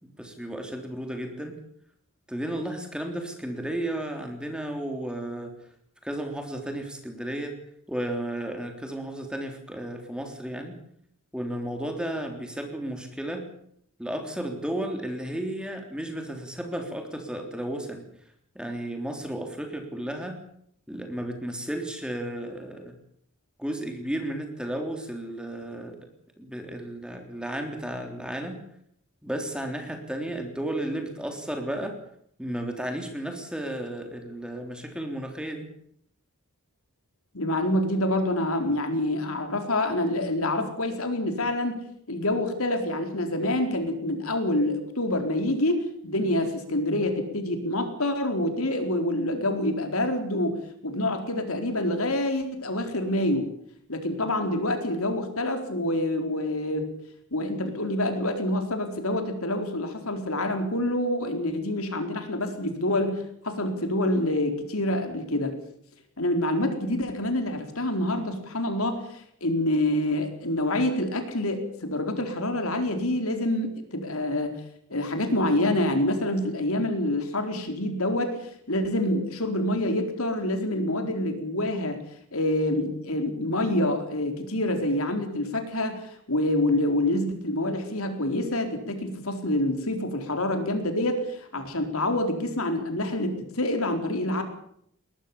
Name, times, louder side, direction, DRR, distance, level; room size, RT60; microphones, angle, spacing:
voice 1, 0.0-1.6 2.3-5.5 6.0-7.6 7.9-10.8 11.3-13.5 14.0-18.1 18.6-20.4 20.9-23.0 23.6-26.0 26.4-28.6 29.2-32.0 32.4-35.7, right 1 dB, 5° right, 4 dB, 3.4 m, -33 dB
voice 2, 37.3-41.8 42.1-53.5 53.9-56.9 57.3-65.6 66.2-74.5 74.9-82.0 82.3-94.4, left 1 dB, 80° left, 6 dB, 4.3 m, -27 dB
22.0 x 20.0 x 7.1 m, 0.68 s
head